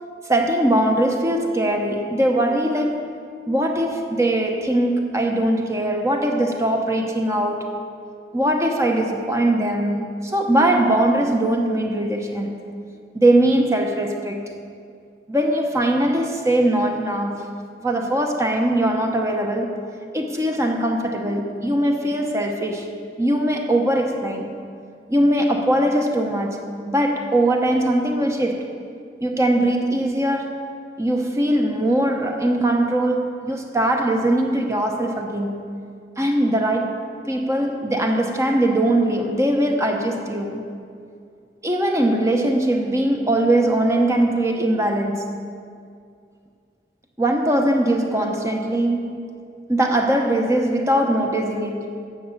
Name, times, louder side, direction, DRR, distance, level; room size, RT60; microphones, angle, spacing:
voice 1, 0.3-3.1 3.5-7.8 8.3-12.5 13.1-14.4 15.3-17.4 17.8-19.8 20.1-22.9 23.2-24.5 25.1-28.7 29.2-30.6 31.0-35.7 36.2-37.0 37.3-40.7 41.6-45.4 47.2-49.3 49.7-52.0, right 1 dB, 15° right, 2 dB, 1.0 m, -21 dB
11.0 x 7.9 x 7.3 m, 2.3 s
head